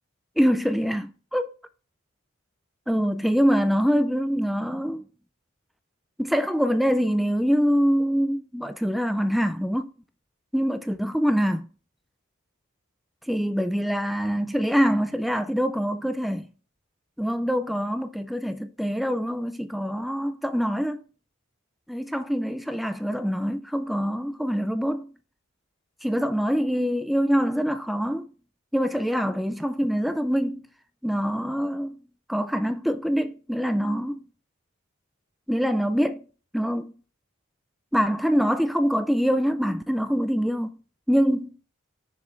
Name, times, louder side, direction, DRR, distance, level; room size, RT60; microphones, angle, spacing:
voice 1, 0.4-1.5 2.9-5.1 6.2-9.9 10.5-11.7 13.2-16.5 17.2-21.0 21.9-25.1 26.0-28.3 28.7-30.7 31.0-32.0 32.3-34.2 35.5-36.2 36.5-36.9 37.9-40.8 41.1-41.6, equal, ahead, 0.3 m, -24 dB
6.9 x 6.5 x 3.3 m
head